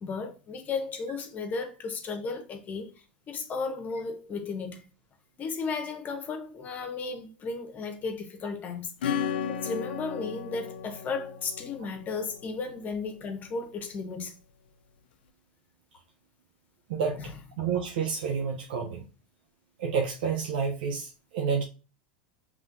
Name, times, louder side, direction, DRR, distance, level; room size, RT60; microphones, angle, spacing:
voice 1, 0.0-2.9 3.3-4.9 5.4-8.9 9.5-14.3 17.1-17.3, left 4 dB, 35° left, 1.0 m, -34 dB
Acoustic guitar / Strum, 9.0-13.3, left 8 dB, 80° left, 0.5 m, -35 dB
voice 2, 17.6-19.0 19.8-21.6, right 6 dB, 70° right, 0.6 m, -29 dB
5.5 x 3.1 x 2.5 m
hypercardioid pair, 95°, 5 cm